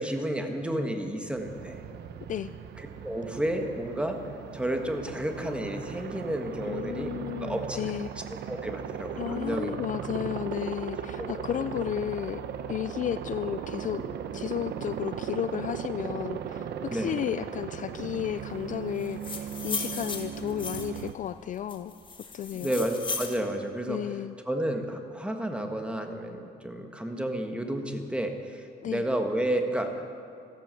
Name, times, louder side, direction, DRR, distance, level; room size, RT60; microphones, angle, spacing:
voice 1, 0.0-1.8 3.0-4.2 4.5-7.1 7.4-7.8 8.5-9.7 11.2-11.8 16.9-17.1 22.6-24.0 24.4-29.9, right 1 dB, 5° right, 4 dB, 1.5 m, -31 dB
Aircraft, 1.2-21.1, right 8 dB, 75° right, 0.9 m, -37 dB
voice 2, 6.6-8.1 9.2-14.0 14.3-21.9 22.3-22.8 23.9-24.3 28.8-29.0, left 10 dB, 50° left, 13 dB, 0.4 m, -33 dB
sound 1, 19.0-21.1 21.7-23.4, left 4 dB, 30° left, 1.7 m, -36 dB
14.5 x 13.0 x 7.7 m, 2.5 s
cardioid pair, 130°, 17 cm